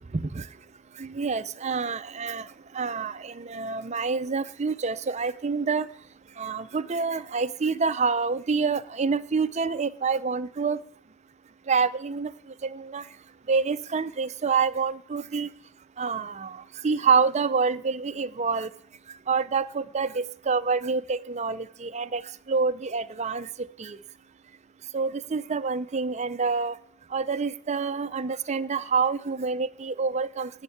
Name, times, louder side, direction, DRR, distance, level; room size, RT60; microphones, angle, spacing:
voice 1, 0.1-0.5 1.0-2.5 2.7-5.9 6.4-10.8 11.7-12.3 12.6-13.0 13.5-15.5 16.0-18.7 19.3-22.2 22.5-23.5 23.8-24.0 24.9-26.8 27.1-30.5, right 5 dB, 30° right, 13 dB, 0.5 m, -27 dB
11.5 x 7.3 x 10.0 m, 0.64 s
head